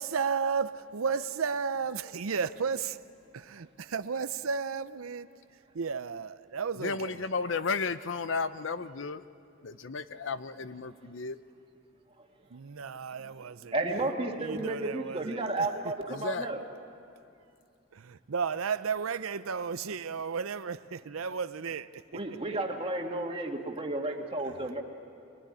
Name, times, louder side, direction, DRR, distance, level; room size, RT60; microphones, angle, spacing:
voice 1, 0.0-3.0 3.3-5.3 5.7-7.2 12.5-13.7 14.4-15.9 17.9-22.0 22.5-22.6, right 5 dB, 90° right, 0.6 m, -33 dB
voice 2, 6.8-9.2 9.6-11.4 16.1-16.5, left 4 dB, 65° left, 0.7 m, -33 dB
voice 3, 13.7-16.6 22.1-24.8, right 2 dB, 25° right, 1.9 m, -32 dB
24.0 x 20.0 x 9.8 m
head